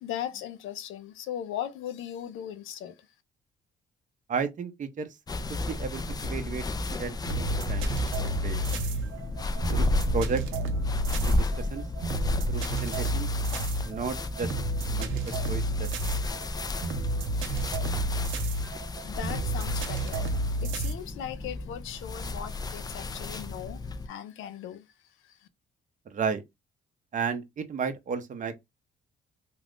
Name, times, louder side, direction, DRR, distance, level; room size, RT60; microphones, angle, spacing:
voice 1, 0.0-2.9 18.5-18.6 19.0-20.3 20.6-24.8, left 10 dB, 85° left, 0.5 m, -38 dB
voice 2, 4.3-5.1 5.5-6.6 7.0-7.9 8.4-8.6 9.7-10.4 11.2-11.8 12.5-13.3 13.8-14.5 14.9-15.9 26.1-26.4 27.1-28.5, right 5 dB, 40° right, 0.6 m, -33 dB
sound 1, 5.3-24.1, left 2 dB, 20° left, 0.3 m, -33 dB
sound 2, 7.3-20.9, right 2 dB, 85° right, 0.6 m, -31 dB
2.4 x 2.4 x 3.4 m
cardioid pair, 90°, 20 cm